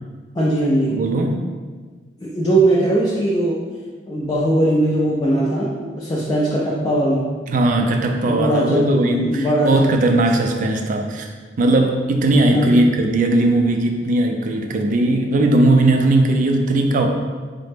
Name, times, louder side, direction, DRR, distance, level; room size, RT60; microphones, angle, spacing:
voice 1, 0.3-1.0 2.2-3.6 4.1-7.2 8.2-10.0 12.5-12.8, right 1 dB, 20° left, -6 dB, 0.4 m, -20 dB
voice 2, 0.9-1.4 7.5-11.3 11.6-17.1, right 2 dB, 50° right, 3 dB, 0.3 m, -18 dB
3.8 x 2.1 x 3.3 m, 1.5 s
head